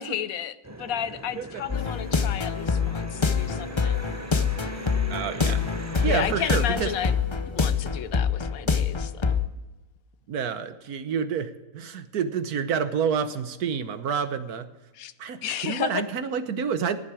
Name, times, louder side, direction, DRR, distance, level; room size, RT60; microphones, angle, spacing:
voice 1, 0.0-4.0 6.1-7.2 7.5-9.4 14.9-15.1 15.4-16.0, left 10 dB, 70° left, 14 dB, 1.1 m, -33 dB
sound 1, 0.6-6.5, right 2 dB, 15° right, 0.6 m, -41 dB
sound 2, 1.7-9.5, left 5 dB, 35° left, 0.5 m, -26 dB
voice 2, 5.1-6.9 10.3-14.7 15.2-17.0, right 7 dB, 85° right, 11 dB, 1.5 m, -29 dB
15.5 x 10.5 x 4.9 m, 1.1 s
omnidirectional pair, 1.6 m